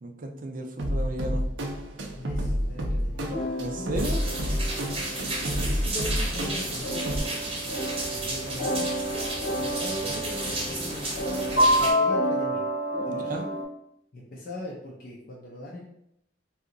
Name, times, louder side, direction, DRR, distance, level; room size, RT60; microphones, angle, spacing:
voice 1, 0.0-1.4 3.6-4.2 10.0-10.2 13.1-13.5, right 1 dB, 45° right, 5 dB, 0.4 m, -34 dB
sound 1, 0.8-7.2, equal, 90° right, 0.6 m, -30 dB
voice 2, 2.2-3.3 3.7-4.0 4.8-7.5 8.1-9.3 9.6-11.5 11.8-12.7 13.1-13.4 14.1-15.8, left 1 dB, 50° left, -4 dB, 0.6 m, -40 dB
sound 2, 3.1-13.6, equal, 80° left, 1.1 m, -29 dB
sound 3, 4.0-11.9, right 2 dB, 30° right, 0.8 m, -33 dB
2.8 x 2.4 x 3.8 m, 0.76 s
head